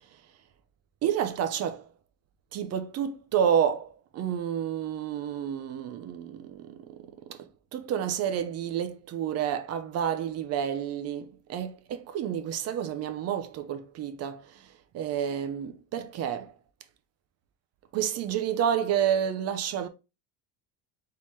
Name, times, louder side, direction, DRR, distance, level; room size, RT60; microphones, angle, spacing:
voice 1, 1.0-1.9 2.5-16.5 17.9-19.9, right 9 dB, 35° right, 0.6 m, -30 dB
4.1 x 3.7 x 3.1 m
cardioid pair, 160°, 42 cm